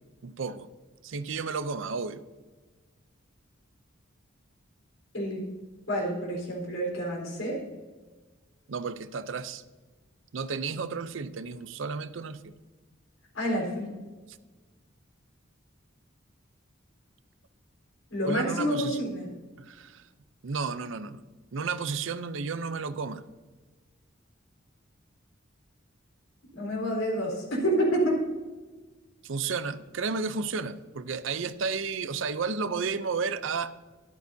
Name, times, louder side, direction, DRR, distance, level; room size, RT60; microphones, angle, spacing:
voice 1, 0.2-0.7 1.0-2.2 8.7-9.6 10.3-12.5 18.3-19.0 19.6-20.1 20.4-21.2 21.5-23.2 29.2-33.7, right 5 dB, 75° right, 0.6 m, -32 dB
voice 2, 5.1-5.5 5.9-7.6 13.3-13.9 18.1-19.3 26.5-28.2, equal, 85° left, 3.9 m, -28 dB
12.5 x 12.0 x 2.7 m
head